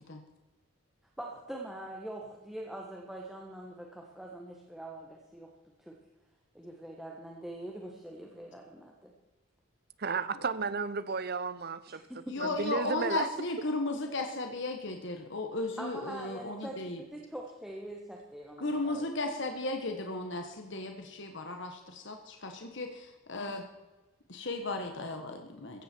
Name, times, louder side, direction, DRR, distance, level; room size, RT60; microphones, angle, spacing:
voice 1, 1.2-5.5 5.8-6.0 6.5-9.1 11.9-12.5 15.8-19.1, right 1 dB, ahead, -1 dB, 1.4 m, -43 dB
voice 2, 10.0-12.0 12.4-13.3, right 4 dB, 45° right, 15 dB, 0.7 m, -33 dB
voice 3, 12.3-17.0 18.6-23.0 23.3-23.6 24.3-25.8, left 2 dB, 55° left, 4 dB, 1.4 m, -35 dB
15.5 x 15.5 x 4.6 m, 1.1 s
head